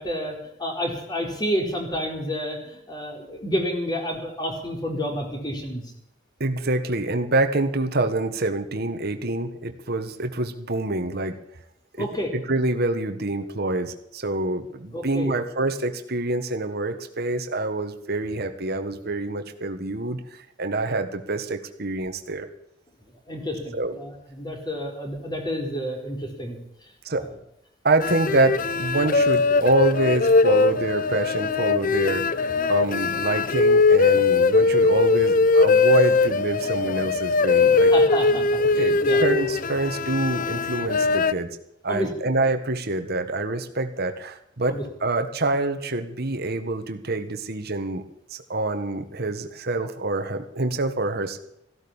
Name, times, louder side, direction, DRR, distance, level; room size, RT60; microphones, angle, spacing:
voice 1, 0.0-5.8 12.0-12.3 14.9-15.4 23.3-26.6 37.9-39.2 41.9-42.1 44.7-44.8, equal, 20° left, 2 dB, 4.2 m, -29 dB
voice 2, 6.4-11.4 12.0-22.5 23.7-24.0 27.0-27.3 27.8-32.4 32.7-37.9 38.6-41.5 41.8-48.0 48.3-51.4, right 2 dB, 55° right, 7 dB, 1.5 m, -26 dB
sound 1, 28.0-41.3, left 4 dB, 45° left, 0.6 m, -20 dB
15.5 x 12.5 x 7.3 m, 0.76 s
head